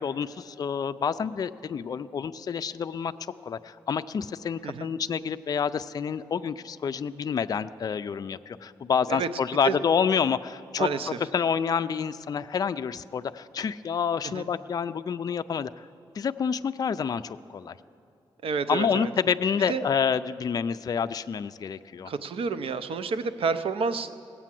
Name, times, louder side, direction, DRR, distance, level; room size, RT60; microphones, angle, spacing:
voice 1, 0.0-3.1 3.5-10.9 11.3-15.9 16.1-17.7 18.7-22.1, left 6 dB, 40° left, 10 dB, 0.3 m, -28 dB
voice 2, 10.8-11.2 14.2-14.5 18.4-19.1 19.7-19.9 22.1-24.2, right 5 dB, 75° right, 11 dB, 0.6 m, -29 dB
19.0 x 8.4 x 7.5 m, 2.7 s
wide cardioid pair, 145°, 9 cm